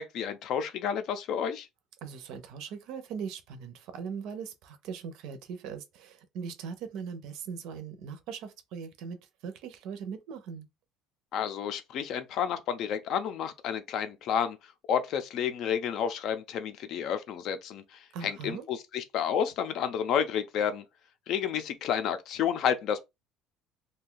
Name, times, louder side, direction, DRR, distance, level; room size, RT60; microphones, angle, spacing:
voice 1, 0.0-1.7 11.3-14.6 14.9-17.8 18.2-20.8 21.3-23.0, left 8 dB, 45° left, 0.4 m, -30 dB
voice 2, 2.0-10.7 18.1-18.6, right 6 dB, 60° right, 0.6 m, -40 dB
2.6 x 2.2 x 3.8 m
cardioid pair, 170°, 0 cm